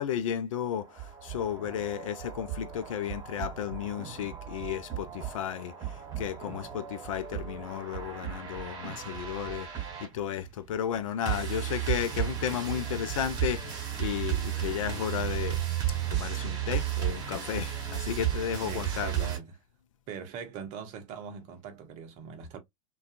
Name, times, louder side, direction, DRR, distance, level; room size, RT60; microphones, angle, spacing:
voice 1, 0.0-5.7 6.2-9.7 10.0-15.6 16.1-19.3, left 9 dB, 60° left, 0.5 m, -33 dB
sound 1, 0.6-19.4, right 11 dB, 20° right, 1.2 m, -34 dB
voice 2, 18.6-19.6 20.1-22.6, right 7 dB, 35° right, 0.7 m, -41 dB
2.3 x 2.3 x 2.4 m
figure-of-eight pair, 95°, 19 cm